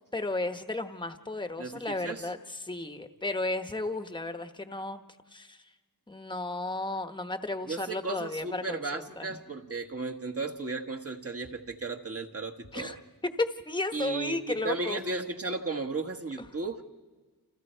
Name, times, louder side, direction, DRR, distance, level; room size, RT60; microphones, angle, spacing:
voice 1, 0.1-5.0 5.3-5.6 6.1-9.3 12.7-13.0 13.4-15.0 16.4-16.5, left 2 dB, 10° left, 7 dB, 1.1 m, -34 dB
voice 2, 1.6-2.3 7.7-12.9 13.9-16.8, right 3 dB, 40° right, 4 dB, 1.6 m, -35 dB
29.5 x 28.5 x 4.5 m, 1.4 s
wide cardioid pair, 115°, 37 cm